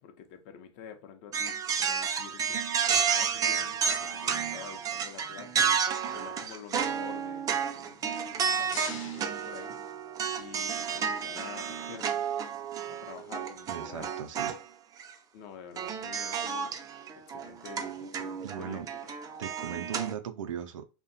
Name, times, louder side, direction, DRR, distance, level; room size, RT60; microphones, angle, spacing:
voice 1, 0.0-2.6 3.1-5.7 6.1-9.8 10.4-12.2 12.9-14.2 15.3-16.7 17.1-19.1, left 7 dB, 55° left, 0.6 m, -48 dB
sound 1, 1.3-14.6 15.0-15.1 15.8-20.1, right 7 dB, 25° right, 0.3 m, -31 dB
sound 2, 8.2-10.4, left 4 dB, 85° left, 0.8 m, -46 dB
voice 2, 13.7-14.6 18.4-18.9 19.4-20.9, right 9 dB, 90° right, 0.4 m, -38 dB
2.7 x 2.1 x 2.5 m
hypercardioid pair, 115°, 16 cm